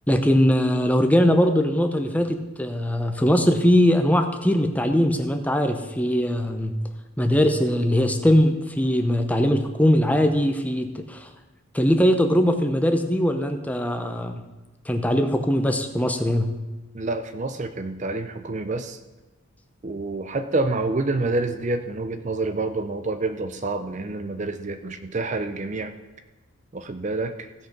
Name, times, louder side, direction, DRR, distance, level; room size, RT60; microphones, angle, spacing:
voice 1, 0.1-6.7 7.2-11.3 11.7-14.4 14.9-16.5, equal, 5° left, 6 dB, 0.7 m, -21 dB
voice 2, 16.9-19.0 19.8-25.9 26.7-27.5, right 2 dB, 35° right, 9 dB, 0.5 m, -28 dB
15.5 x 5.7 x 5.9 m, 1.1 s
head